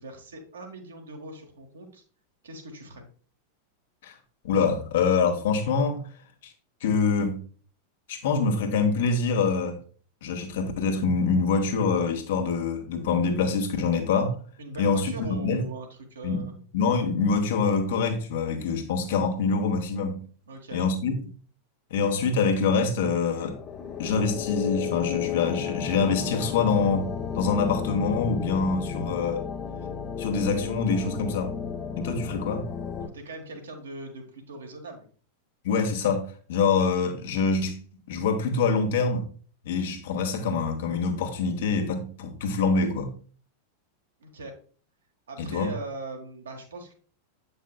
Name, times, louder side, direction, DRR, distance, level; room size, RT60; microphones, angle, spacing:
voice 1, 0.0-2.0 2.4-3.0 14.6-16.5 20.5-20.9 33.0-35.1 44.2-44.6 45.3-46.9, right 2 dB, 70° right, 1.3 m, -40 dB
voice 2, 4.4-6.0 6.8-7.4 8.1-9.8 10.2-14.4 14.8-15.6 16.2-16.5 16.7-20.2 20.7-21.1 21.9-23.6 24.0-29.4 30.2-31.6 32.0-32.7 35.6-37.8 38.1-39.3 39.6-43.1 45.4-45.7, left 4 dB, 55° left, 1.1 m, -25 dB
sound 1, 23.3-33.1, left 7 dB, 30° left, 0.6 m, -33 dB
8.3 x 5.4 x 2.2 m
figure-of-eight pair, 90°, 0 cm